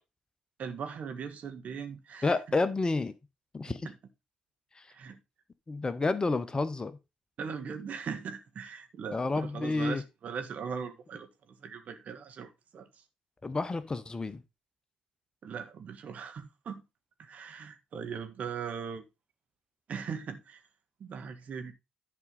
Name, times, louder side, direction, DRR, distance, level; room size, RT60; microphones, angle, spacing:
voice 1, 0.6-2.3 3.6-3.7 4.9-5.2 7.4-12.9 15.4-16.8 17.2-19.0 19.9-20.6 21.0-21.7, right 6 dB, 45° right, 1.5 m, -39 dB
voice 2, 2.2-3.1 3.5-3.9 4.7-4.9 5.7-7.0 9.1-10.0 13.4-14.4, left 3 dB, 25° left, 1.0 m, -30 dB
11.0 x 5.4 x 4.0 m
figure-of-eight pair, 45°, 3 cm